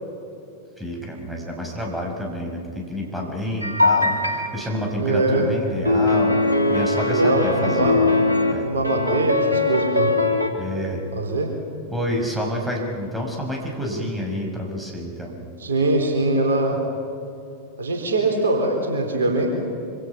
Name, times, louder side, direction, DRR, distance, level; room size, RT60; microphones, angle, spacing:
voice 1, 0.8-6.4 6.7-8.0 8.5-8.7 10.6-11.1 11.9-15.4, equal, 5° right, 0 dB, 5.6 m, -28 dB
sound 1, 3.6-4.5 5.8-8.5 8.8-10.5, left 2 dB, 85° right, 2.5 m, -20 dB
voice 2, 5.0-5.8 7.1-8.0 8.6-10.1 11.1-11.5 15.6-16.8 17.8-19.5, right 2 dB, 70° right, 3 dB, 3.8 m, -22 dB
26.0 x 26.0 x 5.9 m, 2.6 s
figure-of-eight pair, 90°, 0 cm